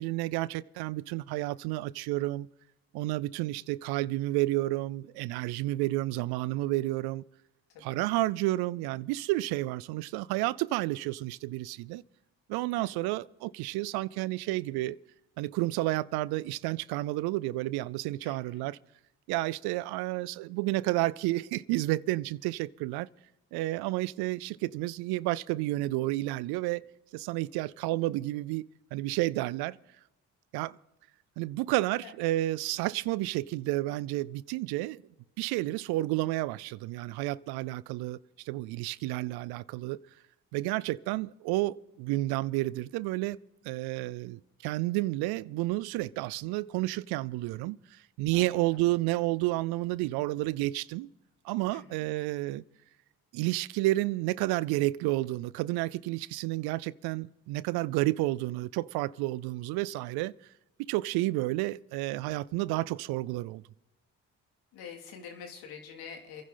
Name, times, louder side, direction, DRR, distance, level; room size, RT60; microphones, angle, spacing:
voice 1, 0.0-2.5 2.9-7.2 7.8-12.0 12.5-15.0 15.4-18.8 19.3-23.1 23.5-26.9 27.1-29.8 30.5-30.8 31.4-35.0 35.4-40.0 40.5-43.4 43.6-51.1 51.4-52.6 53.3-60.3 60.8-63.6, right 18 dB, 90° right, 0.5 m, -31 dB
voice 2, 18.2-18.7 32.0-32.1 48.3-48.8 51.7-52.0 64.7-66.4, left 6 dB, 85° left, 2.6 m, -46 dB
28.0 x 10.5 x 3.8 m
supercardioid pair, 70°, 37 cm